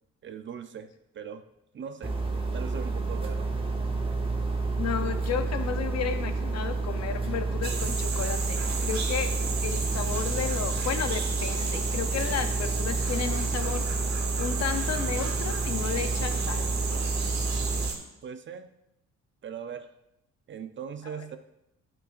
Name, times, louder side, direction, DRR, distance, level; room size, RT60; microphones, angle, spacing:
voice 1, 0.2-0.9 1.1-1.4 1.7-3.5 18.2-18.7 19.4-19.9 20.5-21.4, right 7 dB, 40° right, 10 dB, 0.5 m, -40 dB
sound 1, 2.0-17.9, right 3 dB, 15° right, 0.9 m, -30 dB
voice 2, 4.8-9.3 9.6-13.8 14.4-16.7 21.0-21.2, left 8 dB, 60° left, 8 dB, 0.7 m, -33 dB
sound 2, 7.6-18.0, right 4 dB, 65° right, 1.1 m, -33 dB
8.9 x 5.6 x 2.5 m, 0.86 s
cardioid pair, 90°, 30 cm